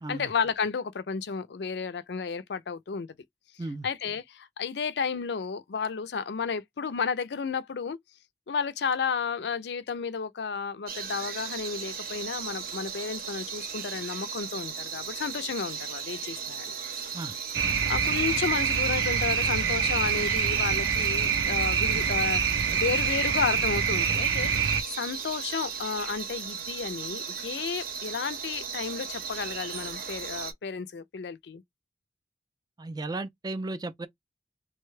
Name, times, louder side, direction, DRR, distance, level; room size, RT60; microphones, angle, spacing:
voice 1, 0.1-3.1 3.8-8.0 8.5-16.7 17.9-22.4 22.7-31.6, left 5 dB, 65° left, 0.4 m, -32 dB
sound 1, 10.9-30.5, right 6 dB, 55° right, 0.7 m, -37 dB
sound 2, 17.5-24.8, right 6 dB, 90° right, 0.6 m, -26 dB
voice 2, 32.8-34.1, right 2 dB, 20° right, 0.3 m, -35 dB
3.0 x 2.1 x 3.2 m
head